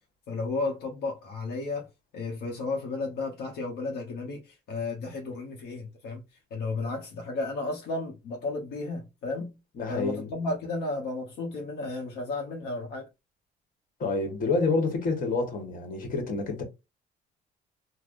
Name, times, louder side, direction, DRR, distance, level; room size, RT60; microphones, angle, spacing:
voice 1, 0.3-1.9 2.1-6.2 6.5-9.5 9.9-13.1, left 3 dB, 80° left, 0.9 m, -33 dB
voice 2, 9.7-10.3 14.0-16.6, left 3 dB, 55° left, 1.2 m, -28 dB
3.3 x 2.1 x 2.5 m
cardioid pair, 110°, 17 cm